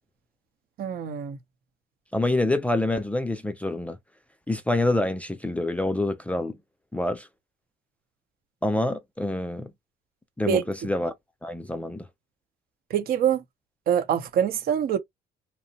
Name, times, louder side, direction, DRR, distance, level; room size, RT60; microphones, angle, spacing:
voice 1, 0.8-1.4 10.5-10.6 12.9-13.4 13.9-15.0, right 9 dB, 65° right, 0.8 m, -24 dB
voice 2, 2.1-4.0 4.5-6.6 6.9-7.3 8.6-9.7 10.4-11.1 11.4-12.1, left 2 dB, 10° left, 0.4 m, -26 dB
2.8 x 2.1 x 2.7 m
cardioid pair, 110°, 17 cm